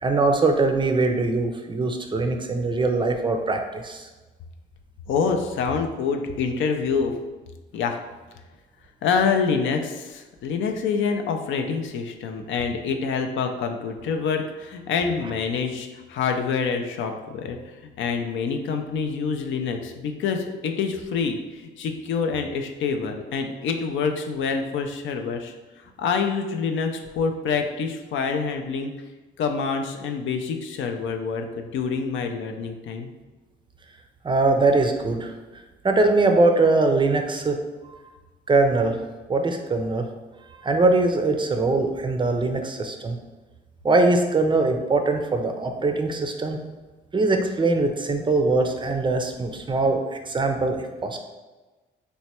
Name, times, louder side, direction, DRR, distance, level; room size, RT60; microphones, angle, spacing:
voice 1, 0.0-4.1 34.2-35.3 35.8-37.6 37.9-38.0 38.5-39.0 39.3-40.1 40.6-43.2 43.8-46.6 47.1-51.2, right 3 dB, 25° right, 4 dB, 0.4 m, -22 dB
voice 2, 5.1-7.1 7.7-8.0 9.0-17.6 18.0-25.5 26.0-28.9 29.4-33.1, left 5 dB, 75° left, 4 dB, 0.4 m, -26 dB
3.1 x 2.2 x 4.2 m, 1.2 s
cardioid pair, 90°, 20 cm